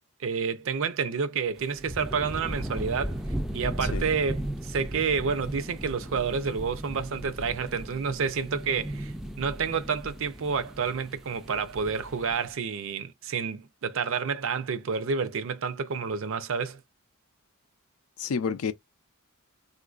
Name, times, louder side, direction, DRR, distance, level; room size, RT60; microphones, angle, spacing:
voice 1, 0.2-3.2 3.5-16.8, right 5 dB, 65° right, 0.5 m, -29 dB
sound 1, 1.6-12.5, right 1 dB, ahead, 0.3 m, -36 dB
voice 2, 18.2-18.7, left 6 dB, 75° left, 0.4 m, -30 dB
3.6 x 2.5 x 2.4 m
head